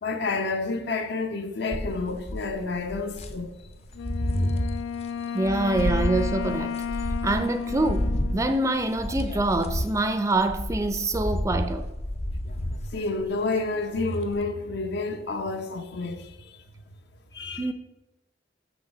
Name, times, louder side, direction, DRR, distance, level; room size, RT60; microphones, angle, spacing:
voice 1, 0.0-3.6 4.5-4.7 12.9-16.5 17.3-17.7, left 3 dB, 65° left, 0.8 m, -29 dB
sound 1, 1.7-3.5 3.9-4.8 5.5-13.5 14.0-14.4, left 1 dB, 35° left, 0.6 m, -30 dB
Wind instrument woodwind instrument, 3.9-9.4, left 7 dB, 85° left, 0.3 m, -33 dB
voice 2, 5.3-6.8 7.2-11.8 17.6-17.7, right 2 dB, 15° right, 0.4 m, -25 dB
6.4 x 6.0 x 4.9 m
head